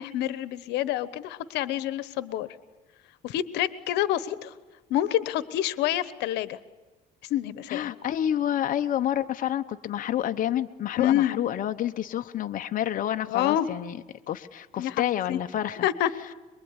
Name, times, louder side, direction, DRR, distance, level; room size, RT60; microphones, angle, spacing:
voice 1, 0.0-2.5 3.2-4.5 4.9-6.6 7.3-7.9 11.0-11.4 13.3-13.7 14.8-15.4 15.8-16.1, left 12 dB, 90° left, 15 dB, 1.1 m, -27 dB
voice 2, 7.7-14.0 14.3-15.9, left 11 dB, 55° left, 7 dB, 1.0 m, -29 dB
24.0 x 23.0 x 9.8 m, 1.1 s
cardioid pair, 110°, 17 cm